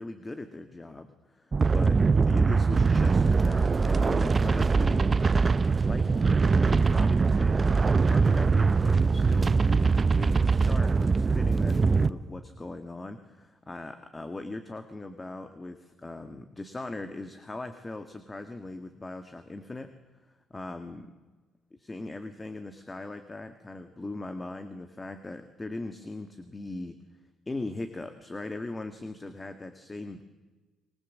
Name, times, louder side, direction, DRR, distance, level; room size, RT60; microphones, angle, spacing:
voice 1, 0.0-5.4 5.8-19.9 20.5-21.1 21.8-27.0 27.4-30.2, left 2 dB, 20° left, 9 dB, 1.6 m, -39 dB
sound 1, 1.5-12.1, right 4 dB, 30° right, 0.7 m, -22 dB
24.0 x 20.5 x 7.4 m, 1.2 s
cardioid pair, 85°, 0 cm